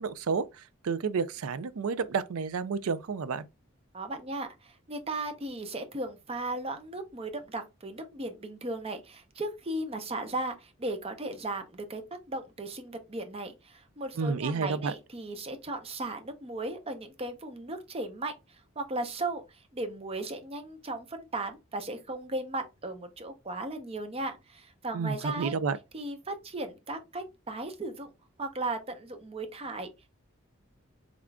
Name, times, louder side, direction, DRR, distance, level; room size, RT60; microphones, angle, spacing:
voice 1, 0.0-3.5 14.2-14.9 24.9-25.8, right 5 dB, 80° right, 0.4 m, -30 dB
voice 2, 3.9-12.0 12.3-25.5 25.9-28.1 28.4-29.9, right 2 dB, 30° right, 0.6 m, -36 dB
3.6 x 3.6 x 2.2 m
head